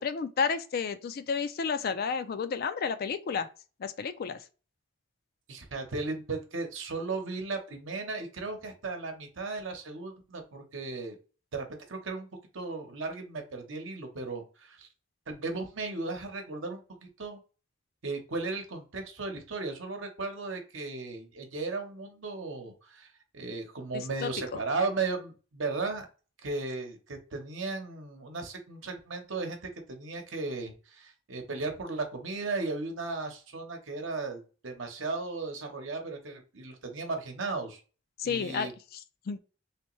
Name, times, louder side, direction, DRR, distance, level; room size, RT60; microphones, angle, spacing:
voice 1, 0.0-3.5 3.8-4.4 23.9-24.6 38.2-39.4, left 5 dB, 50° left, 0.4 m, -32 dB
voice 2, 5.5-11.2 11.5-12.3 12.5-14.9 15.3-17.4 18.0-23.1 23.3-26.1 26.4-29.6 29.9-37.8 38.2-38.7, right 3 dB, 70° right, 0.9 m, -36 dB
3.4 x 3.2 x 3.1 m
head